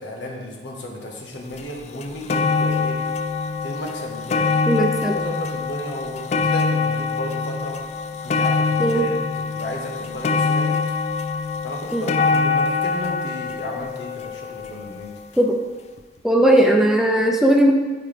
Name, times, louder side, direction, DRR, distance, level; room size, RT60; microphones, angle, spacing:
voice 1, 0.0-3.0 3.6-7.8 8.2-10.8 11.6-15.1, left 1 dB, 90° left, 0 dB, 1.5 m, -34 dB
sound 1, 1.6-1.7 2.0-15.2 16.0-16.1, left 4 dB, 35° left, 0.3 m, -24 dB
voice 2, 4.7-5.2 8.8-9.1 11.9-12.1 15.4-15.6 16.2-17.7, right 1 dB, 5° right, 1 dB, 0.6 m, -17 dB
12.5 x 4.7 x 3.4 m, 1.3 s
head